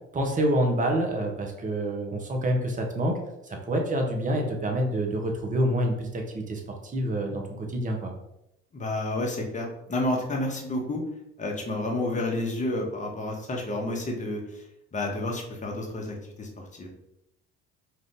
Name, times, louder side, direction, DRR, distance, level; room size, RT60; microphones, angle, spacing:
voice 1, 0.1-3.2 3.4-6.6 6.9-8.1, right 1 dB, 25° right, 2 dB, 0.8 m, -27 dB
voice 2, 8.7-11.0 11.4-14.6 14.9-16.9, left 1 dB, 25° left, 0 dB, 0.9 m, -30 dB
2.8 x 2.5 x 3.6 m, 0.84 s
hypercardioid pair, 65°, 31 cm